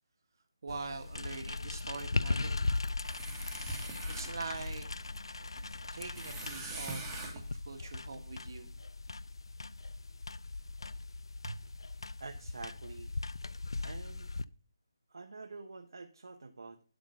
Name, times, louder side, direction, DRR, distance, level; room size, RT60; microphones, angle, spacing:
voice 1, 0.6-2.5 4.1-4.9 5.3-8.7, right 4 dB, 50° right, 1.5 m, -44 dB
sound 1, 0.7-14.4, left 3 dB, 85° left, 0.4 m, -39 dB
sound 2, 2.3-7.5, right 3 dB, 10° right, 1.5 m, -45 dB
voice 2, 12.2-13.1 13.8-14.5 15.1-16.8, right 3 dB, 70° right, 1.1 m, -46 dB
11.5 x 3.8 x 5.5 m
figure-of-eight pair, 170°, 3 cm